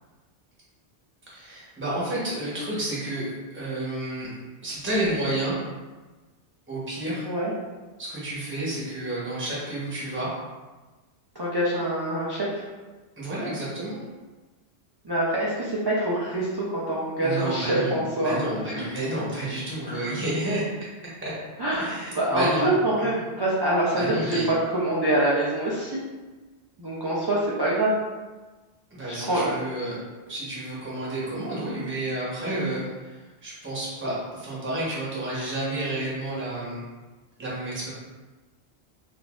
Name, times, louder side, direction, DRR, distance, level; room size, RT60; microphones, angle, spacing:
voice 1, 1.3-4.3 4.6-5.6 6.7-7.3 8.0-10.3 13.2-14.0 17.2-18.0 18.2-20.7 21.2-21.3 21.8-23.1 23.9-24.5 28.9-30.0 30.3-36.8 37.4-37.9, right 1 dB, 10° right, -7 dB, 0.8 m, -30 dB
voice 2, 11.3-12.7 15.0-18.4 18.7-18.9 19.9-20.2 21.6-26.0 26.8-28.0 29.1-29.7 32.5-32.6, right 1 dB, 35° right, -7 dB, 0.4 m, -25 dB
3.9 x 2.5 x 2.3 m, 1.2 s
omnidirectional pair, 1.1 m